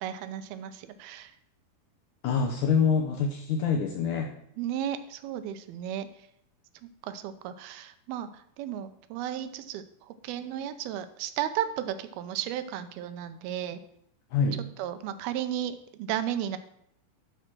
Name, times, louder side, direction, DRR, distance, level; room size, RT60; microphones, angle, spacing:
voice 1, 0.0-1.3 4.6-6.1 7.0-13.8 14.8-16.6, right 10 dB, 85° right, 11 dB, 2.6 m, -34 dB
voice 2, 2.2-4.3 14.3-14.6, left 6 dB, 75° left, 3 dB, 1.8 m, -26 dB
12.5 x 5.1 x 6.0 m, 0.71 s
omnidirectional pair, 4.4 m